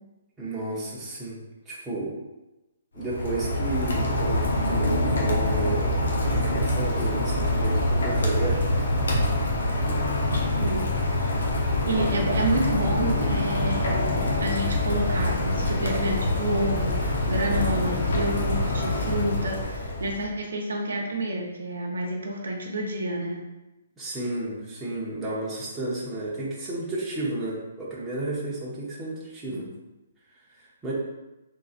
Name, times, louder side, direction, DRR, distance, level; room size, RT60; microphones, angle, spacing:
voice 1, 0.4-1.4 1.7-2.1 2.9-8.6 24.0-29.6 30.6-30.9, right 2 dB, 10° right, -8 dB, 0.8 m, -32 dB
Rain, 3.0-20.3, left 1 dB, 85° left, 0.8 m, -25 dB
voice 2, 11.9-23.4 29.5-29.7, right 1 dB, 90° right, 0 dB, 0.7 m, -29 dB
3.8 x 2.6 x 2.5 m, 1.0 s
hypercardioid pair, 160°, 0 cm